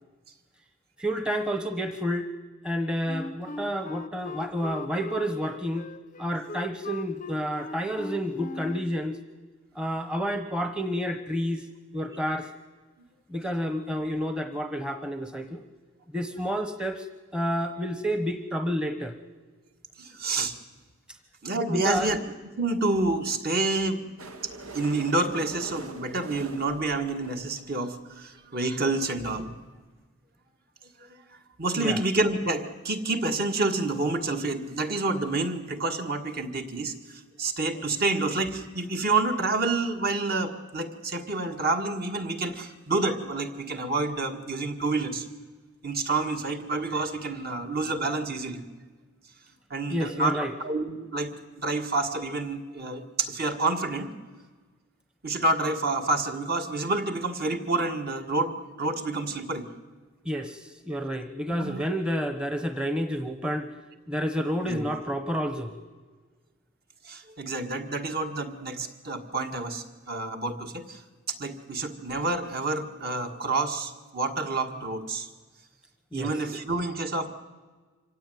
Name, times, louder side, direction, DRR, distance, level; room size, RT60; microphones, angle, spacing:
voice 1, 1.0-2.3 2.6-5.9 6.2-9.2 9.7-11.7 11.9-12.5 13.3-15.7 16.1-17.1 17.3-19.1 21.5-22.1 31.8-32.0 49.9-50.5 60.2-63.7 64.1-65.8 76.1-76.3, equal, 5° right, 7 dB, 1.0 m, -30 dB
Wind instrument woodwind instrument, 3.1-8.9, left 3 dB, 35° left, 0.6 m, -39 dB
voice 2, 20.0-20.5 21.4-22.2 22.6-24.1 24.7-29.6 31.0-45.3 45.8-48.6 49.7-54.1 55.2-59.7 61.6-61.8 64.6-64.8 67.0-71.0 71.3-75.3 76.1-77.3, right 2 dB, 45° right, 5 dB, 1.8 m, -28 dB
sound 1, 24.2-28.1 28.7-28.8 29.0-29.1 29.3-29.4 29.7-29.8, right 2 dB, 90° right, 1.8 m, -43 dB
25.0 x 16.5 x 9.3 m, 1.4 s
head